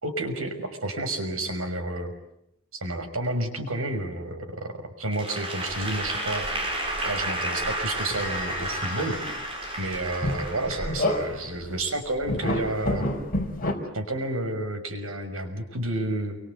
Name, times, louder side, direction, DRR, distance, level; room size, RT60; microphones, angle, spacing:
voice 1, 0.0-2.1 2.7-6.5 7.0-9.2 9.8-13.1 13.9-16.4, right 1 dB, 90° right, 6 dB, 6.0 m, -30 dB
Applause / Crowd, 5.1-11.4, right 1 dB, 25° right, 6.5 m, -32 dB
sound 1, 5.7-7.3 7.6-11.7 12.2-13.7, left 1 dB, 40° left, 4.9 m, -31 dB
29.0 x 24.5 x 8.3 m, 0.79 s
head